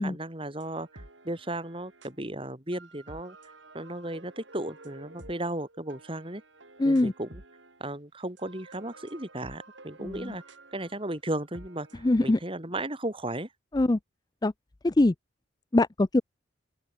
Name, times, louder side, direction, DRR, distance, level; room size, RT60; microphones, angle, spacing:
voice 1, 0.0-3.4 3.7-6.4 6.8-7.4 7.8-10.4 10.7-13.5, right 1 dB, 30° right, 3.7 m, -35 dB
sound 1, 0.6-2.2 2.7-7.9 8.2-12.3, right 2 dB, 85° right, 6.2 m, -51 dB
voice 2, 6.8-7.1 10.0-10.3 12.0-12.4 13.7-14.0 14.4-14.5 14.8-15.1 15.7-16.2, left 2 dB, 20° left, 0.4 m, -23 dB
open air
head